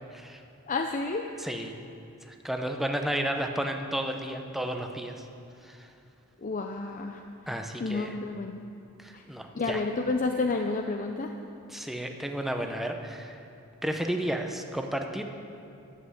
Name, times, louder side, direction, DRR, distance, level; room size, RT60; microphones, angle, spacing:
voice 1, 0.1-0.4 1.4-1.7 2.3-5.3 5.6-5.9 7.5-8.2 9.0-9.8 11.7-13.4 13.8-15.2, right 1 dB, ahead, 4 dB, 0.7 m, -32 dB
voice 2, 0.7-1.3 6.4-7.2 7.8-8.6 9.1-9.2 9.6-11.3, left 3 dB, 35° left, 4 dB, 0.5 m, -30 dB
11.5 x 7.8 x 7.9 m, 2.6 s
head